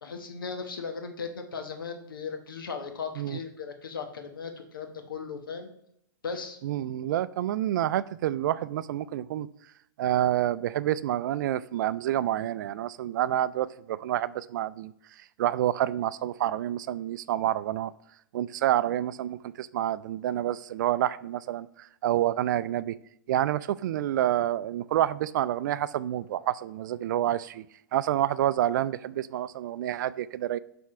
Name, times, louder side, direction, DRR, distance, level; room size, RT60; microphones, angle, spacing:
voice 1, 0.0-5.7 6.2-6.6, left 5 dB, 85° left, 5 dB, 1.2 m, -37 dB
voice 2, 6.6-9.5 10.0-14.9 15.4-17.9 18.3-23.0 23.3-27.7 27.9-30.6, right 12 dB, 60° right, 17 dB, 0.4 m, -28 dB
7.4 x 3.5 x 4.3 m, 0.74 s
hypercardioid pair, 125°, 11 cm